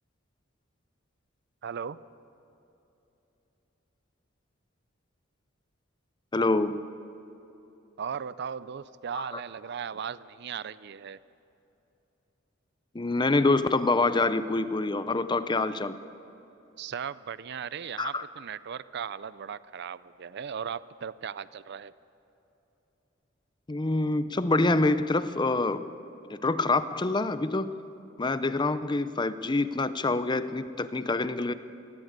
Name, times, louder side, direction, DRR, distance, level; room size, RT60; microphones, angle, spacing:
voice 1, 1.6-2.0 8.0-11.2 16.8-21.9, right 7 dB, 55° right, 17 dB, 0.5 m, -37 dB
voice 2, 6.3-6.8 9.1-9.4 12.9-16.0 18.0-18.2 23.7-25.9 26.3-27.8 28.2-31.5, left 2 dB, 20° left, 13 dB, 0.6 m, -26 dB
21.0 x 16.0 x 8.1 m, 3.0 s
head